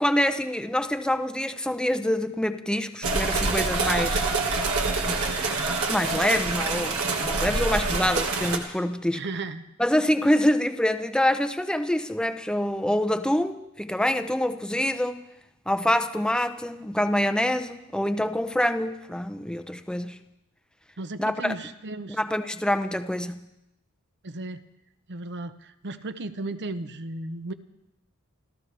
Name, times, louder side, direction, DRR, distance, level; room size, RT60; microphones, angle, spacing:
voice 1, 0.0-4.2 5.0-5.2 5.9-9.2 9.8-15.3 15.7-20.2 21.2-21.6 22.1-23.5, left 1 dB, 5° left, 9 dB, 0.7 m, -26 dB
sound 1, 3.0-8.6, right 3 dB, 80° right, 1.8 m, -26 dB
voice 2, 9.1-9.6 21.0-22.2 24.2-24.6 25.1-27.5, right 2 dB, 50° right, 11 dB, 0.9 m, -35 dB
29.0 x 14.5 x 3.4 m, 0.87 s
head